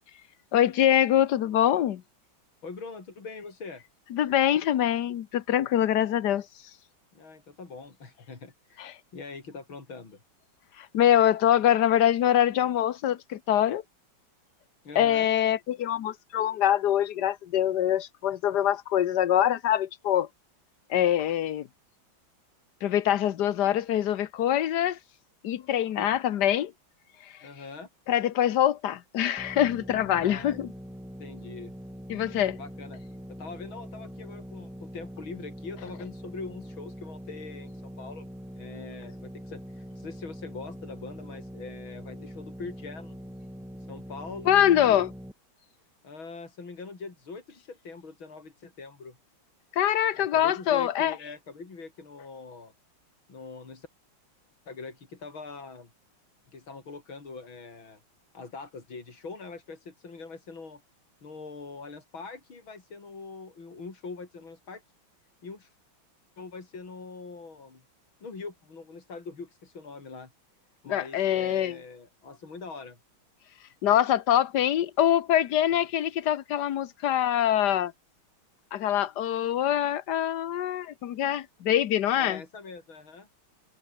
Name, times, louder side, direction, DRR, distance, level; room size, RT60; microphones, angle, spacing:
voice 1, 0.5-2.0 4.1-6.4 8.8-9.0 10.8-13.8 14.9-20.3 20.9-21.7 22.8-25.0 25.4-26.7 28.1-30.7 32.1-32.6 44.5-45.1 49.7-51.2 70.9-71.8 73.8-77.9 78.7-82.4, left 11 dB, 60° left, 1.5 m, -24 dB
voice 2, 2.6-3.8 7.1-10.2 14.8-15.3 26.0-26.1 27.4-27.9 30.2-30.6 31.2-31.7 32.6-33.0 33.3-38.3 38.5-43.2 43.9-45.1 46.0-49.2 50.1-52.7 53.3-53.9 54.7-55.9 56.5-58.0 58.3-60.8 61.2-64.8 65.4-65.7 66.4-67.8 68.2-70.3 70.8-73.0 82.1-83.3, left 4 dB, 80° left, 4.9 m, -43 dB
sound 1, 29.4-45.3, equal, ahead, 1.4 m, -43 dB
omnidirectional pair, 2.2 m